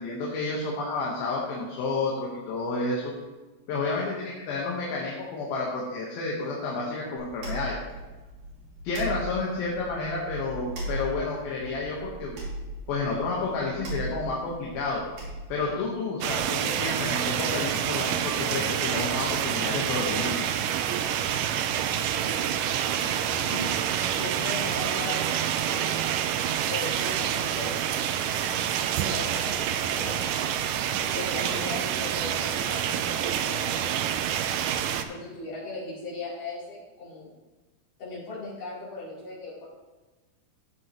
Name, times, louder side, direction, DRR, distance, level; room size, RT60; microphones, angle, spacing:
voice 1, 0.0-3.1 3.7-7.8 8.8-12.4 12.9-15.0 15.5-20.3, left 3 dB, 75° left, -3 dB, 3.2 m, -30 dB
sound 1, 7.2-15.7, right 1 dB, 60° right, 4.3 m, -38 dB
sound 2, 16.2-35.0, right 9 dB, 90° right, 1.8 m, -27 dB
voice 2, 22.2-22.5 23.2-23.7 24.1-25.9 26.7-28.3 29.1-30.4 31.1-34.1 35.1-37.3 38.0-39.7, left 3 dB, 60° left, -8 dB, 5.2 m, -38 dB
14.5 x 7.9 x 3.1 m, 1.2 s
omnidirectional pair, 4.3 m